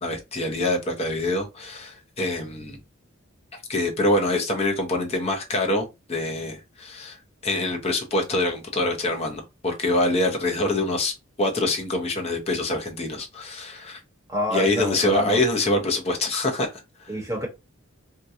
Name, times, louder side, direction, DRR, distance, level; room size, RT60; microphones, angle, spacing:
voice 1, 0.0-2.8 3.7-7.2 7.4-14.0 14.5-17.1, left 2 dB, 30° left, 0.7 m, -25 dB
voice 2, 14.3-15.4 17.1-17.5, equal, 15° right, 1.1 m, -28 dB
2.8 x 2.2 x 3.6 m
head